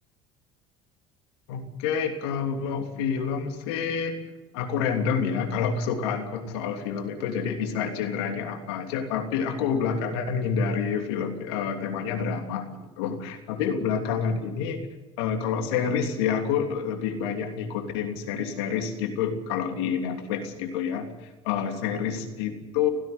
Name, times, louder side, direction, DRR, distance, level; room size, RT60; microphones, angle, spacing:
voice 1, 1.5-4.2 4.5-12.7 13.0-14.8 15.2-22.9, left 7 dB, 80° left, 5 dB, 3.1 m, -28 dB
17.5 x 16.5 x 9.6 m, 1.1 s
hypercardioid pair, 70°, 14 cm